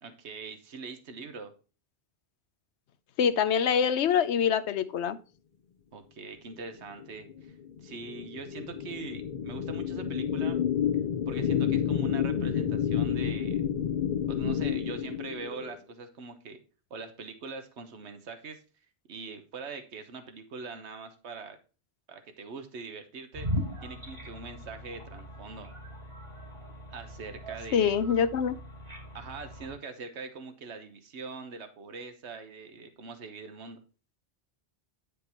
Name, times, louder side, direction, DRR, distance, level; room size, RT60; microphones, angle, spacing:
voice 1, 0.0-1.5 5.9-10.6 11.3-13.6 14.3-16.6 16.9-18.6 19.1-21.6 22.1-23.5 23.8-25.7 26.9-27.9 29.1-33.8, right 4 dB, 85° right, 8 dB, 1.3 m, -42 dB
voice 2, 3.2-5.2 27.7-28.6, left 7 dB, 85° left, 14 dB, 1.0 m, -25 dB
sound 1, 7.0-15.8, left 8 dB, 50° left, 0.7 m, -30 dB
sound 2, 23.3-29.7, equal, 65° right, 2.7 m, -39 dB
9.7 x 5.2 x 4.4 m, 0.33 s
omnidirectional pair, 1.1 m